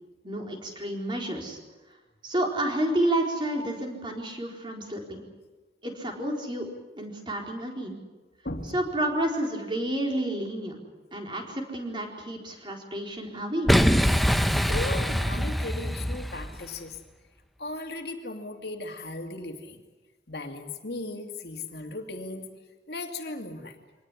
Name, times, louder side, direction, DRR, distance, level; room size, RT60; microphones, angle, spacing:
voice 1, 0.2-1.6 2.2-5.2 5.8-6.7 7.0-8.0 8.7-10.8 11.1-13.7, right 1 dB, 25° right, 1 dB, 4.3 m, -30 dB
voice 2, 8.4-8.8 14.3-17.0 17.6-19.8 20.3-22.5 22.9-23.8, left 2 dB, 65° left, 3 dB, 2.6 m, -37 dB
Boom, 13.7-16.7, equal, ahead, 0.9 m, -24 dB
24.5 x 19.0 x 9.9 m, 1.2 s
head